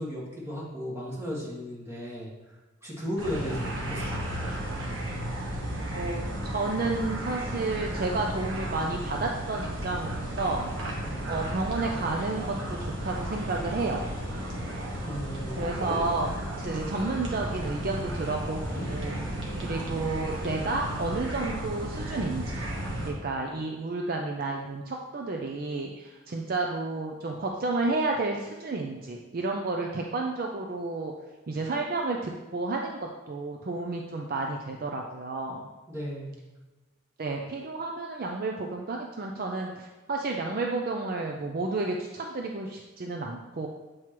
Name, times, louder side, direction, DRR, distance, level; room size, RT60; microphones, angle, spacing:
voice 1, 0.0-2.3 2.8-4.5 11.1-11.3 15.0-15.8 35.9-36.4, equal, 15° right, -7 dB, 1.8 m, -35 dB
sound 1, 3.2-23.1, right 1 dB, 70° right, 1.2 m, -34 dB
voice 2, 5.9-10.7 11.3-14.0 15.6-19.2 19.6-22.6 23.0-31.1 31.5-35.7 37.2-43.7, right 3 dB, 50° right, 1 dB, 0.5 m, -31 dB
sound 2, 11.2-15.9 16.3-21.6, left 1 dB, 15° left, 2.0 m, -47 dB
7.4 x 4.7 x 3.0 m, 1.2 s
head